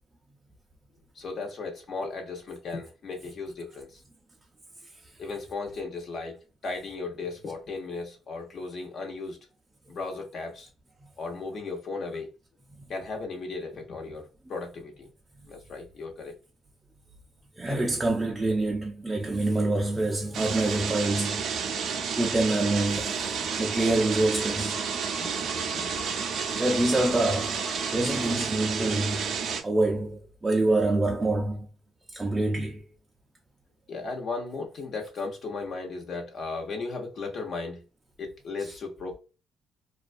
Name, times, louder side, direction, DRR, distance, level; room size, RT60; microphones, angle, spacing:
voice 1, 1.1-4.0 5.2-9.4 9.9-10.7 11.2-12.3 12.9-15.1 15.5-16.3 17.7-17.8 25.2-25.9 33.9-37.8 38.2-39.2, left 3 dB, 60° left, 0.9 m, -36 dB
voice 2, 17.6-21.4 22.1-23.2 23.6-24.8 26.6-27.7 27.9-29.3 29.6-31.7 32.1-32.8 38.6-38.7, right 2 dB, 20° right, 0.4 m, -26 dB
sound 1, 20.3-28.3, left 3 dB, 85° left, 0.8 m, -46 dB
sound 2, 20.3-29.6, right 6 dB, 75° right, 0.5 m, -31 dB
2.3 x 2.2 x 2.5 m
cardioid pair, 90°, 0 cm